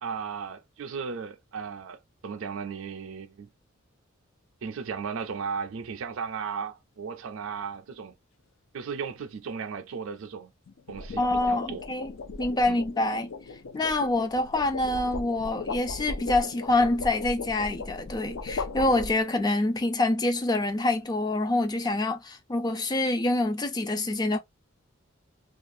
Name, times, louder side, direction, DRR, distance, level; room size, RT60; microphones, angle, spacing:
voice 1, 0.0-3.5 4.6-8.1 8.7-10.5 10.9-11.8 12.7-12.8, right 6 dB, 75° right, 0.4 m, -36 dB
sound 1, 5.2-5.5 10.7-19.6, left 3 dB, 75° left, 0.5 m, -37 dB
voice 2, 11.2-12.1 12.4-13.3 13.7-24.4, left 2 dB, 20° left, 0.4 m, -26 dB
2.4 x 2.3 x 2.6 m
head